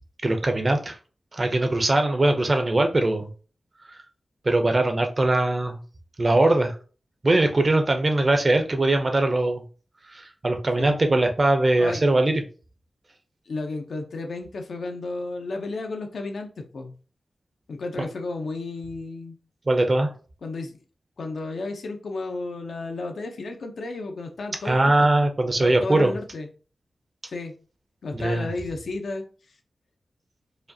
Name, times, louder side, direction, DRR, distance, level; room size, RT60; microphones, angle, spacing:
voice 1, 0.2-0.9 1.3-3.3 4.4-5.8 6.2-6.7 7.2-9.6 10.1-12.4 18.0-18.1 19.7-20.1 24.6-26.1 28.1-28.5, right 2 dB, 30° right, 0.6 m, -21 dB
voice 2, 11.8-12.1 13.5-17.0 17.7-19.4 20.4-20.7 21.2-26.5 27.3-27.5 28.0-29.2, left 3 dB, 70° left, 0.6 m, -33 dB
4.9 x 2.4 x 2.7 m
wide cardioid pair, 155°, 0 cm